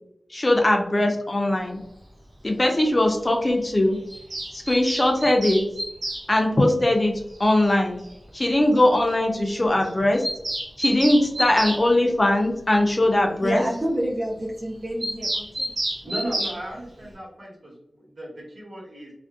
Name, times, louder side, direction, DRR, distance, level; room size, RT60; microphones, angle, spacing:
voice 1, 0.3-1.8 2.4-4.0 4.5-5.7 6.3-8.0 8.3-10.2 10.8-13.6, left 1 dB, 35° left, 3 dB, 0.5 m, -20 dB
Bird vocalization bird call bird song, 4.1-6.2 7.7-7.8 8.0-8.1 8.4-8.5 8.8-8.9 9.1-9.2 9.4-9.6 9.8-11.8 15.0-16.6, right 1 dB, 90° right, 0.8 m, -29 dB
voice 2, 13.4-15.7, equal, 35° right, -4 dB, 0.5 m, -28 dB
voice 3, 16.0-19.1, right 1 dB, 70° right, -5 dB, 1.2 m, -35 dB
2.5 x 2.1 x 2.4 m, 0.79 s
wide cardioid pair, 55°, 0 cm